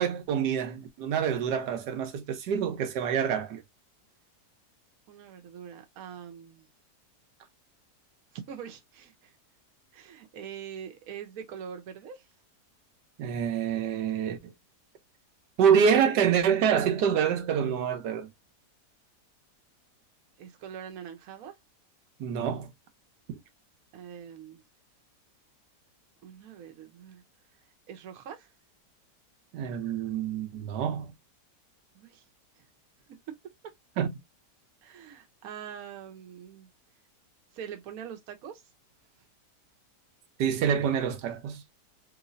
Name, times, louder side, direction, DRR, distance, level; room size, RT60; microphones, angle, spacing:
voice 1, 0.0-3.6 13.2-14.5 15.6-18.3 22.2-22.7 23.3-23.4 29.5-31.1 34.0-34.1 40.4-41.6, right 7 dB, 80° right, 1.4 m, -26 dB
voice 2, 5.1-6.7 8.3-9.3 9.9-12.2 20.4-21.5 23.9-24.6 26.2-27.2 27.9-28.5 31.9-32.2 34.8-36.7 37.5-38.6, right 8 dB, 65° right, 1.2 m, -43 dB
3.1 x 3.1 x 2.5 m
omnidirectional pair, 1.8 m